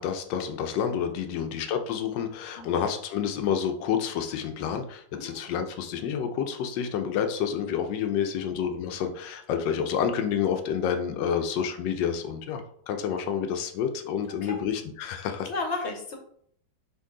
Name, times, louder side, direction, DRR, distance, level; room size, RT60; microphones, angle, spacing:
voice 1, 0.0-15.5, left 8 dB, 90° left, 6 dB, 1.3 m, -29 dB
voice 2, 11.2-11.6 14.4-14.6 15.4-16.2, left 3 dB, 50° left, 3 dB, 0.9 m, -35 dB
5.4 x 2.5 x 3.7 m, 0.63 s
omnidirectional pair, 1.9 m